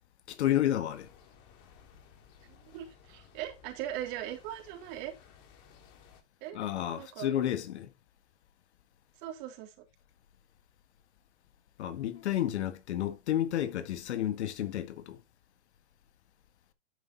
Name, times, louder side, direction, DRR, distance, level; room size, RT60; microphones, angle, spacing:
voice 1, 0.3-1.1 6.5-7.9 11.8-15.2, left 12 dB, 60° left, 1.8 m, -31 dB
sound 1, 0.9-6.2, left 7 dB, 40° left, 3.3 m, -58 dB
voice 2, 2.4-5.1 6.4-6.6 7.0-7.3 9.2-9.7, right 12 dB, 45° right, 3.5 m, -40 dB
10.5 x 8.2 x 3.0 m
hypercardioid pair, 135°, 37 cm